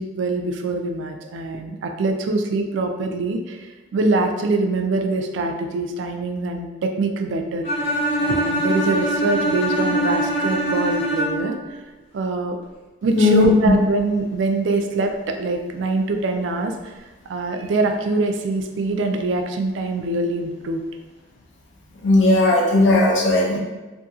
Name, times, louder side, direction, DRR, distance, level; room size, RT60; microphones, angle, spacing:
voice 1, 0.0-7.7 8.2-11.6 12.1-12.6 13.0-16.9 17.3-20.8, right 2 dB, 75° right, 5 dB, 0.3 m, -24 dB
Bowed string instrument, 7.6-11.6, right 1 dB, 30° left, 0.5 m, -23 dB
voice 2, 13.2-13.7 22.0-23.6, left 2 dB, 80° left, -3 dB, 0.6 m, -16 dB
2.7 x 2.6 x 2.3 m, 1.2 s
head